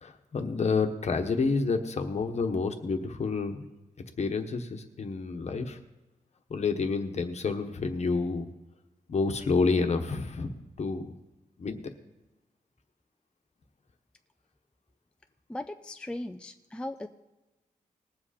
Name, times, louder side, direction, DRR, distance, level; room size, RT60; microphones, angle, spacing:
voice 1, 0.0-3.7 4.2-5.8 6.5-8.5 9.1-11.2 11.6-11.8, left 4 dB, 55° left, 6 dB, 1.1 m, -29 dB
voice 2, 15.5-17.1, left 1 dB, 5° left, 6 dB, 0.4 m, -38 dB
20.0 x 7.5 x 4.3 m, 1.1 s
wide cardioid pair, 145°, 14 cm